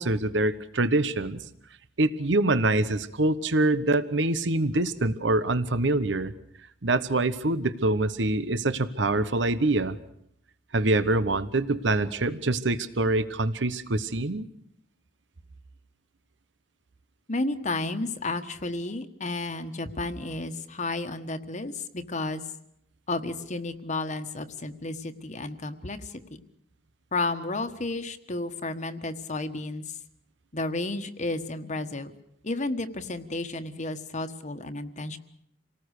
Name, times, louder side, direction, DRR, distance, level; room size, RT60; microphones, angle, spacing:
voice 1, 0.0-1.4 2.0-6.3 6.8-10.0 10.7-14.5, right 2 dB, 75° right, 14 dB, 1.0 m, -25 dB
voice 2, 17.3-22.4 23.1-26.1 27.1-29.8 30.5-32.1 32.4-35.2, left 2 dB, 40° left, 8 dB, 1.4 m, -32 dB
28.0 x 19.0 x 6.6 m, 0.72 s
head